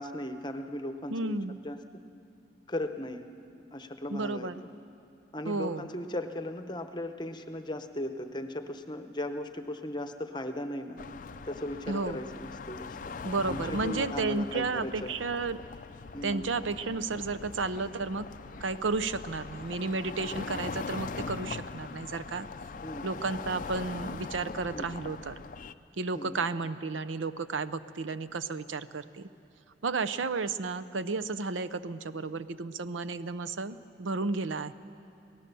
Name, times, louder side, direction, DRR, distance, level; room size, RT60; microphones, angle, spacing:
voice 1, 0.0-2.0 2.7-3.3 3.7-4.5 5.3-11.0 11.4-13.1 13.5-15.2 16.1-16.5 22.8-23.1 24.7-24.9 26.1-26.4, left 1 dB, 25° left, 8 dB, 0.8 m, -37 dB
voice 2, 1.1-1.6 4.1-4.6 5.4-5.9 11.9-12.2 13.2-15.6 16.2-18.3 18.6-22.5 23.0-25.4 26.0-29.3 29.8-34.7, right 3 dB, 85° right, 13 dB, 0.6 m, -32 dB
sound 1, 11.0-25.7, left 4 dB, 45° left, 0.4 m, -41 dB
25.0 x 18.0 x 6.9 m, 2.7 s
head